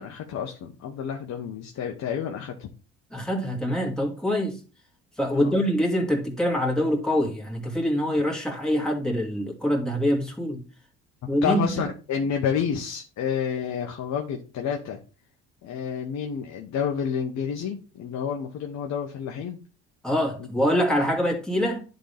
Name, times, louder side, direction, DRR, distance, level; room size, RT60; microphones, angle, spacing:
voice 1, 0.0-2.7 5.3-5.6 11.4-15.0 15.6-19.6 20.4-20.5 20.9-21.0, left 7 dB, 55° left, 1.1 m, -29 dB
voice 2, 3.1-4.6 5.2-10.6 11.3-11.9 20.0-21.9, equal, ahead, 2.5 m, -25 dB
10.5 x 3.9 x 3.5 m
supercardioid pair, 80°, 32 cm